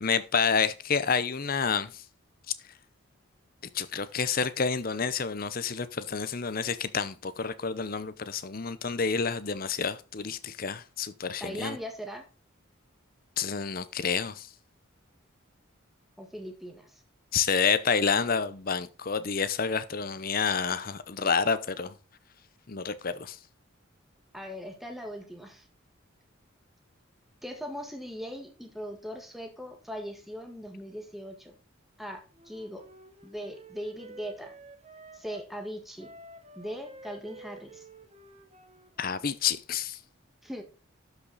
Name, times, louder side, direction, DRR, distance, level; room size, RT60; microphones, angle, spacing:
voice 1, 0.0-2.0 3.7-11.8 13.4-14.5 17.3-21.9 22.7-23.4 39.0-40.0, left 5 dB, 45° left, 0.7 m, -29 dB
voice 2, 11.4-12.3 16.2-17.0 24.3-25.7 27.4-31.5 32.0-32.9 33.2-34.5 35.1-36.1 36.5-37.9 40.4-40.6, equal, ahead, 1.5 m, -40 dB
Wind instrument woodwind instrument, 32.3-35.5 36.0-39.3, right 2 dB, 30° right, 1.1 m, -50 dB
12.0 x 5.8 x 4.0 m
head